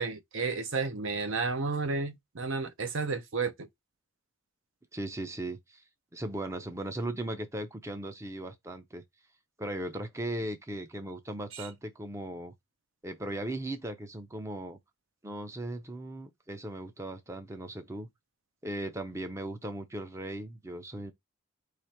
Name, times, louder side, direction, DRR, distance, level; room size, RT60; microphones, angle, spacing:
voice 1, 0.0-3.7 11.6-11.7, right 4 dB, 65° right, 0.7 m, -32 dB
voice 2, 4.9-5.8 6.1-9.0 9.6-12.5 13.0-14.8 15.2-18.1 18.6-21.1, right 1 dB, 15° right, 0.5 m, -37 dB
4.9 x 2.5 x 4.3 m
head